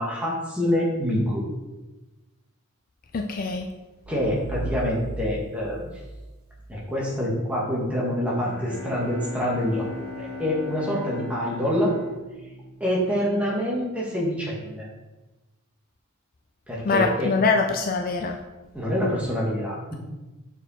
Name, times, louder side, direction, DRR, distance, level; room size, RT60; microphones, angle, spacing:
voice 1, 0.0-1.4 4.1-5.9 6.7-11.9 12.8-14.9 16.7-17.3 18.7-19.9, equal, 5° right, -5 dB, 1.6 m, -26 dB
voice 2, 3.1-3.7 16.8-18.4, left 4 dB, 40° left, 3 dB, 0.4 m, -23 dB
sound 1, 4.0-6.7, right 1 dB, 85° right, 0.9 m, -36 dB
Bowed string instrument, 8.4-13.6, left 3 dB, 10° left, 1.3 m, -39 dB
6.8 x 4.6 x 4.2 m, 1.1 s
head